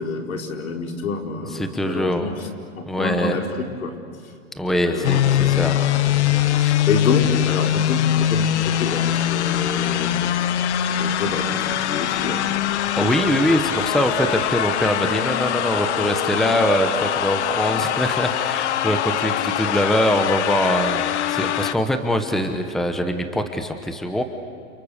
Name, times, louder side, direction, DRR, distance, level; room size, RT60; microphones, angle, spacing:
voice 1, 0.0-4.0 4.8-5.7 6.9-10.3 10.9-12.5, left 4 dB, 80° left, 2 dB, 4.5 m, -28 dB
voice 2, 1.5-2.3 2.9-3.4 4.6-5.8 6.6-6.8 13.0-24.2, equal, ahead, 6 dB, 1.1 m, -23 dB
sound 1, 5.0-21.7, left 11 dB, 55° left, 1.2 m, -22 dB
30.0 x 29.5 x 6.7 m, 2.3 s
hypercardioid pair, 145°, 41 cm